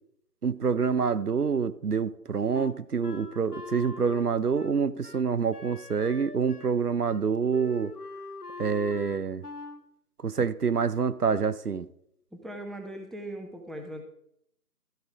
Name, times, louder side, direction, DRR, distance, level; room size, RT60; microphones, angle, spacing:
voice 1, 0.4-7.9 8.6-9.4 10.2-11.9, right 6 dB, 70° right, 15 dB, 0.6 m, -27 dB
Wind instrument woodwind instrument, 2.5-6.8 7.0-7.2 7.5-9.8, left 4 dB, 70° left, 1.0 m, -43 dB
voice 2, 12.3-14.0, right 1 dB, ahead, 3 dB, 0.6 m, -39 dB
13.0 x 6.6 x 3.6 m, 0.72 s
figure-of-eight pair, 170°, 48 cm